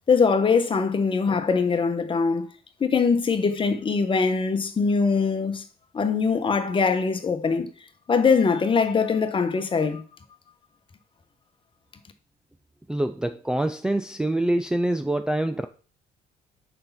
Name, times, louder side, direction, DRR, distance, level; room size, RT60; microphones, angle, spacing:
voice 1, 0.1-2.5 2.8-5.6 5.9-7.7 8.1-10.0, left 5 dB, 30° left, 1.3 m, -22 dB
voice 2, 12.9-15.7, right 1 dB, 5° right, 0.5 m, -25 dB
6.7 x 5.6 x 5.8 m
cardioid pair, 110°, 17 cm